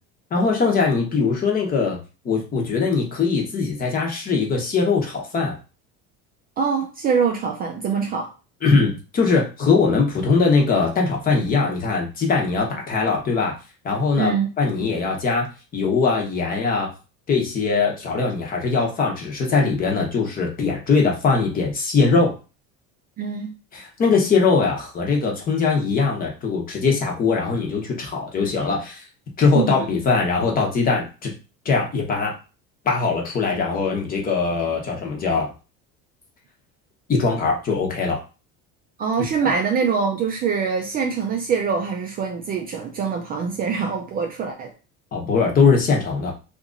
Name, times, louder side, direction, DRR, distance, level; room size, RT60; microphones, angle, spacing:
voice 1, 0.3-2.0 2.2-5.6 8.6-13.5 13.8-15.5 15.7-16.9 17.3-22.3 23.7-29.0 29.4-31.3 31.6-32.3 32.8-35.5 37.1-38.2 45.1-46.3, left 4 dB, 25° left, 0 dB, 0.9 m, -21 dB
voice 2, 6.6-8.3 14.2-14.5 23.2-23.5 29.5-29.8 39.0-44.7, right 6 dB, 30° right, 3 dB, 0.4 m, -24 dB
2.8 x 2.5 x 3.7 m, 0.32 s
cardioid pair, 160°, 32 cm